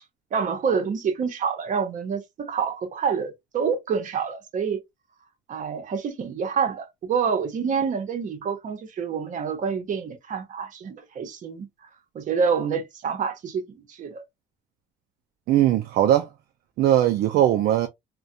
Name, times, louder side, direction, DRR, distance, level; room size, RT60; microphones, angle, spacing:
voice 1, 0.3-4.8 5.5-11.7 12.1-14.2 17.3-17.4, right 6 dB, 50° right, 0.9 m, -27 dB
voice 2, 15.5-16.3 16.8-17.9, right 12 dB, 65° right, 0.4 m, -19 dB
2.3 x 2.2 x 2.6 m
cardioid pair, 110°, 17 cm